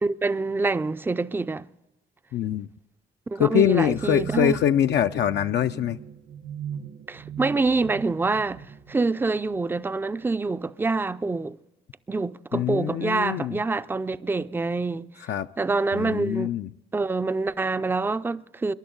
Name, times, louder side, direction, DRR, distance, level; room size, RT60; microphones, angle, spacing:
voice 1, 0.0-1.7 3.3-4.6 7.1-11.6 12.1-15.1 15.6-16.5 16.9-18.7, right 3 dB, 10° right, 0.4 m, -26 dB
voice 2, 2.3-2.7 3.4-6.0 12.5-13.6 15.2-15.5 15.9-16.7, left 10 dB, 60° left, 0.4 m, -24 dB
sound 1, 3.7-10.3, right 8 dB, 75° right, 1.2 m, -39 dB
22.5 x 11.0 x 3.8 m
cardioid pair, 90°, 20 cm